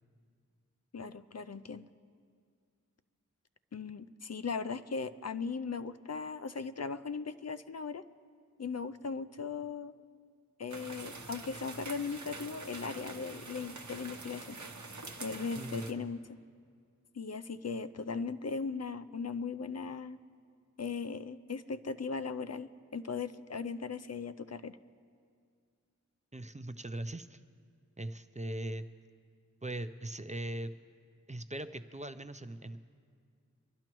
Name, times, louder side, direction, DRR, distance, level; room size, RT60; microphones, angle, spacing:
voice 1, 0.9-1.9 3.7-8.0 8.6-9.9 10.6-14.9 15.2-16.4 17.1-20.2 20.8-24.8, left 5 dB, 55° left, 12 dB, 0.4 m, -38 dB
sound 1, 10.7-15.9, right 3 dB, 65° right, 0.9 m, -45 dB
voice 2, 15.5-16.0 26.3-27.4 28.0-28.9 29.6-30.7 31.3-32.8, right 1 dB, 25° right, 10 dB, 0.5 m, -40 dB
24.5 x 12.0 x 3.0 m, 2.2 s
wide cardioid pair, 40°, 31 cm